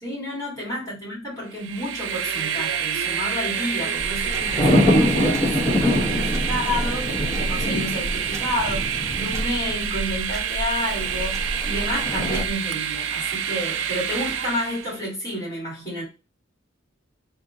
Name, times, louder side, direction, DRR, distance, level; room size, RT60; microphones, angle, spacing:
voice 1, 0.0-16.0, equal, 15° left, 2.5 m, -30 dB
Train, 1.5-15.0, right 8 dB, 70° right, 0.4 m, -28 dB
sound 1, 3.5-9.8 10.8-12.4, left 1 dB, 40° left, 1.1 m, -25 dB
sound 2, 4.0-12.5, right 1 dB, 15° right, 0.5 m, -32 dB
3.6 x 2.7 x 3.7 m
head